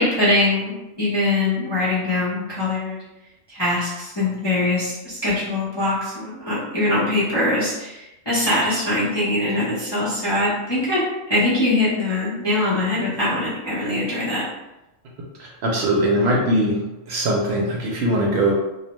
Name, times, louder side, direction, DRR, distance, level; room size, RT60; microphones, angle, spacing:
voice 1, 0.0-3.0 3.5-14.4, left 1 dB, 30° left, -10 dB, 0.5 m, -22 dB
voice 2, 15.4-16.8 17.1-18.5, right 1 dB, 65° right, -2 dB, 0.7 m, -21 dB
2.6 x 2.1 x 2.9 m, 0.98 s
omnidirectional pair, 1.4 m